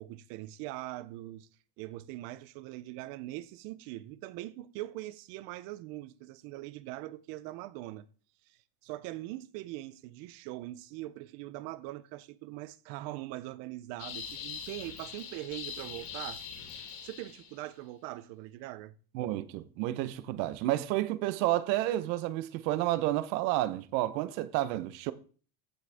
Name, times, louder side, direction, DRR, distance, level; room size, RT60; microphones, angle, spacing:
voice 1, 0.0-1.5 1.8-8.1 8.5-16.4 17.0-18.9, right 16 dB, 45° right, 0.5 m, -42 dB
sound 1, 14.0-17.7, left 7 dB, 55° left, 2.7 m, -42 dB
voice 2, 19.1-25.1, right 15 dB, 80° right, 0.9 m, -30 dB
15.0 x 6.1 x 3.4 m
cardioid pair, 175°, 49 cm